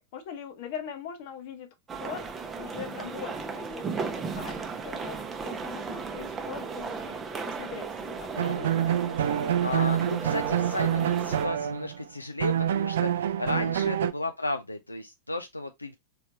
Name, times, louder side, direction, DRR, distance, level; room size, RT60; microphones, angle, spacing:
voice 1, 0.1-2.3 2.6-4.6 4.8-8.8 13.4-13.7, left 8 dB, 50° left, 1.1 m, -41 dB
sound 1, 1.9-11.5, right 5 dB, 20° right, 0.7 m, -36 dB
sound 2, 8.3-12.0 12.4-14.1, right 10 dB, 60° right, 0.4 m, -27 dB
voice 2, 9.6-16.0, left 2 dB, 85° left, 0.4 m, -34 dB
4.1 x 3.4 x 2.6 m
figure-of-eight pair, 90°, 0 cm